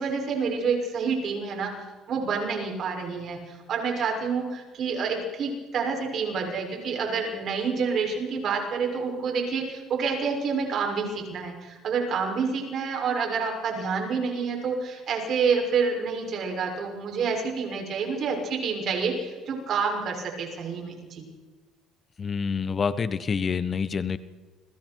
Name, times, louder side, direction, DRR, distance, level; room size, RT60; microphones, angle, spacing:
voice 1, 0.0-1.7 2.1-21.2, right 5 dB, 55° right, 1 dB, 6.8 m, -28 dB
voice 2, 22.2-24.2, left 6 dB, 35° left, 13 dB, 1.2 m, -27 dB
30.0 x 22.0 x 4.7 m, 1.3 s
cardioid pair, 100°, 0 cm